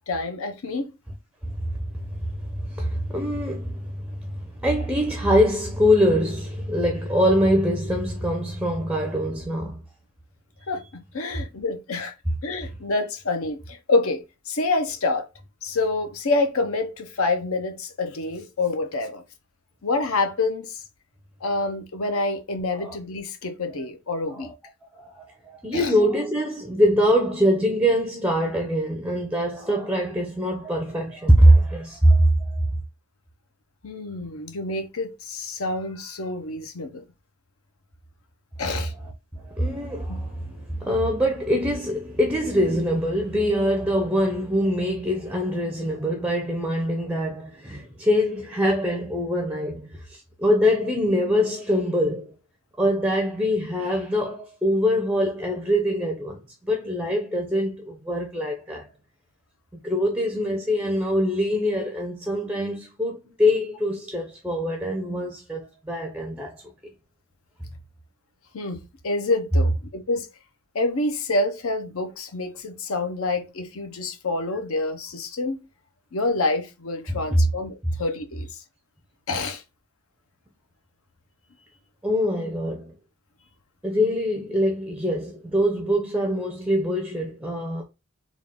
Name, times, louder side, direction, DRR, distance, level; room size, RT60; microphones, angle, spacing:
voice 1, 0.1-0.9 10.7-12.1 12.4-15.3 15.6-19.2 19.8-20.8 21.4-24.5 25.7-25.9 33.8-37.0 38.6-38.9 40.1-40.2 68.5-70.3 70.7-75.7 76.1-78.5 79.3-79.6, left 2 dB, 70° left, 0.7 m, -27 dB
voice 2, 2.1-9.8 22.7-23.0 24.3-24.5 25.0-32.6 39.3-52.4 52.8-58.9 59.8-66.6 77.3-77.5 82.0-82.9 83.8-87.8, equal, 5° right, 0.5 m, -23 dB
3.7 x 2.4 x 3.4 m
head